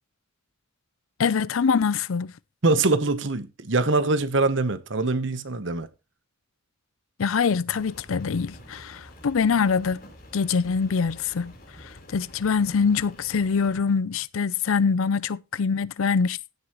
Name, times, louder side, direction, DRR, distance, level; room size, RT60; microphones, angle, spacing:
voice 1, 1.2-2.3 7.2-10.0 10.3-11.5 11.8-16.4, left 5 dB, 85° left, 0.5 m, -24 dB
voice 2, 2.6-5.9, right 3 dB, 60° right, 1.0 m, -23 dB
Rain, 7.7-13.8, equal, 45° left, 4.0 m, -48 dB
15.5 x 8.0 x 3.0 m
head